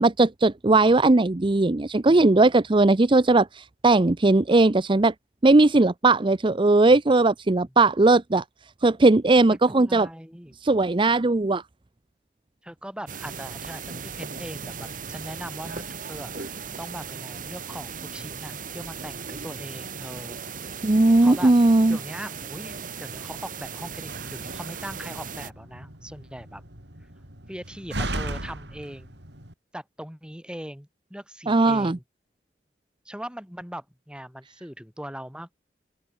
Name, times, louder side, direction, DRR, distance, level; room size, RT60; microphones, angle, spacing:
voice 1, 0.0-5.1 5.4-8.4 8.8-10.1 10.6-11.6 20.8-22.0 31.5-32.0, right 2 dB, 30° right, 0.6 m, -18 dB
voice 2, 9.5-10.6 12.6-20.4 21.2-21.5 21.9-26.6 27.5-29.2 29.7-32.0 33.1-35.6, equal, 5° right, 4.0 m, -40 dB
sound 1, 13.1-25.5, right 5 dB, 50° right, 2.7 m, -37 dB
Slam, 23.9-29.5, right 2 dB, 75° right, 6.6 m, -37 dB
open air
head